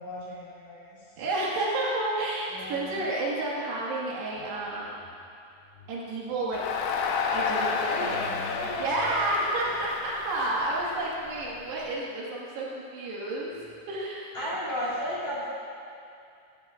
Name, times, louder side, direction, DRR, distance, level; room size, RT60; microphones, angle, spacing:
voice 1, 0.0-1.0 2.5-3.0 5.8-5.9 7.9-9.3 14.3-15.5, equal, 45° left, -9 dB, 3.6 m, -35 dB
voice 2, 1.2-5.1 5.9-6.6 7.3-8.2 8.6-13.6 13.9-14.4, right 2 dB, 80° right, -6 dB, 3.7 m, -30 dB
Crowd, 6.5-11.7, left 5 dB, 80° left, 2.9 m, -31 dB
17.0 x 16.5 x 2.4 m, 2.5 s
omnidirectional pair, 4.8 m